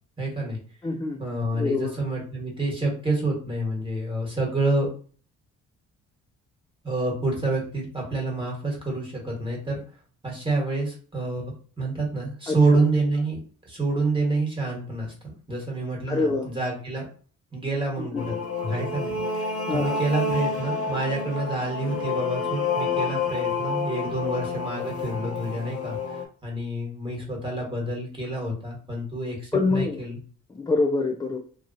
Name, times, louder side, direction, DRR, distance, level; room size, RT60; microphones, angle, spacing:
voice 1, 0.2-0.6 1.2-4.9 6.8-9.8 10.2-13.4 13.6-17.1 17.5-18.3 18.6-26.0 26.4-30.2, right 2 dB, 15° right, -2 dB, 1.4 m, -28 dB
voice 2, 0.8-1.2 1.5-1.9 12.5-12.8 16.1-16.5 18.0-18.3 19.7-20.0 29.5-30.0 30.5-31.4, left 3 dB, 15° left, 3 dB, 0.3 m, -26 dB
sound 1, 18.2-26.3, left 4 dB, 50° left, 0.9 m, -29 dB
3.0 x 2.4 x 2.7 m, 0.43 s
cardioid pair, 90°, 30 cm